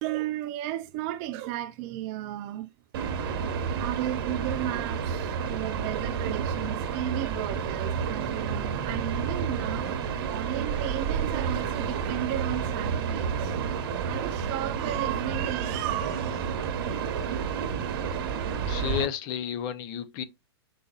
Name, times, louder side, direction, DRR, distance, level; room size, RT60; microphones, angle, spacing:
voice 1, 0.0-2.7 3.8-13.6 14.0-16.6, right 14 dB, 30° right, 0.4 m, -34 dB
sound 1, 2.9-19.1, right 6 dB, 55° right, 1.1 m, -30 dB
voice 2, 18.7-20.2, left 10 dB, 30° left, 0.5 m, -32 dB
4.9 x 3.9 x 2.3 m
hypercardioid pair, 150°, 14 cm